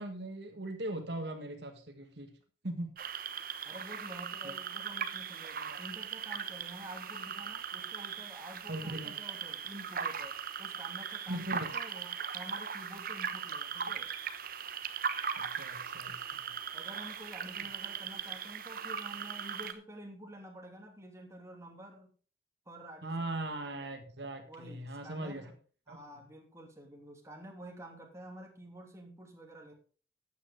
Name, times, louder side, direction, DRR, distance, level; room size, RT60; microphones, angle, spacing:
voice 1, 0.0-2.3 2.6-2.9 4.4-4.5 8.7-9.2 11.3-11.7 15.4-16.4 23.0-25.5 25.9-26.0, right 1 dB, 70° right, 5 dB, 1.8 m, -39 dB
sound 1, 3.0-19.7, right 7 dB, 55° right, 1.0 m, -39 dB
voice 2, 3.6-14.1 16.7-22.1 22.7-23.3 24.5-25.6 25.9-29.7, right 1 dB, 15° right, 1 dB, 2.9 m, -49 dB
13.5 x 9.3 x 3.8 m, 0.39 s
head